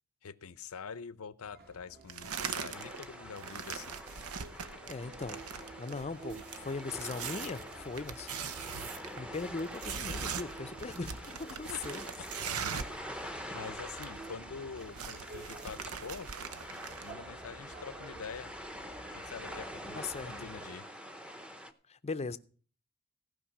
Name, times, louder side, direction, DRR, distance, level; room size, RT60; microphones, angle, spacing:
voice 1, 0.2-4.0 11.7-11.8 12.7-12.8 13.1-16.3 17.0-18.5 19.1-20.9, left 5 dB, 80° left, 0.7 m, -45 dB
sound 1, 1.4-20.7, right 2 dB, 50° right, 1.7 m, -52 dB
sound 2, 2.1-3.0 3.4-13.0 13.3-13.4 13.6-14.3 14.6-17.1, right 7 dB, 90° right, 0.8 m, -41 dB
sound 3, 2.7-21.7, equal, 5° right, 0.7 m, -46 dB
voice 2, 4.9-8.3 9.2-12.1 20.0-20.3 21.9-22.4, left 4 dB, 30° left, 0.5 m, -39 dB
15.5 x 5.3 x 7.2 m
head